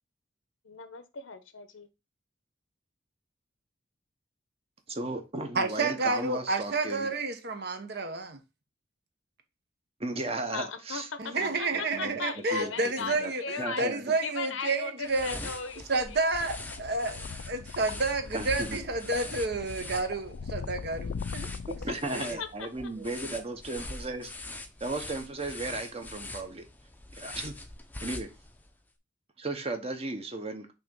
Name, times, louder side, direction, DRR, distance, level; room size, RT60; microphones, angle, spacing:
voice 1, 0.6-1.9 10.5-13.8 14.2-16.2 22.2-22.9, left 5 dB, 85° left, 0.9 m, -38 dB
voice 2, 4.9-7.1 10.0-12.2 12.5-12.7 13.0-13.3 13.6-14.1 18.3-18.8 21.7-24.3 24.8-26.7 27.2-27.5 28.0-28.3 29.4-30.7, right 2 dB, 30° right, 1.0 m, -35 dB
voice 3, 5.5-8.4 11.2-15.5 15.9-21.5 22.1-22.4, right 3 dB, 55° right, 1.1 m, -30 dB
sound 1, 15.0-28.7, left 2 dB, 10° left, 0.6 m, -43 dB
sound 2, 16.3-22.4, left 5 dB, 65° left, 0.4 m, -40 dB
6.0 x 3.0 x 5.3 m
head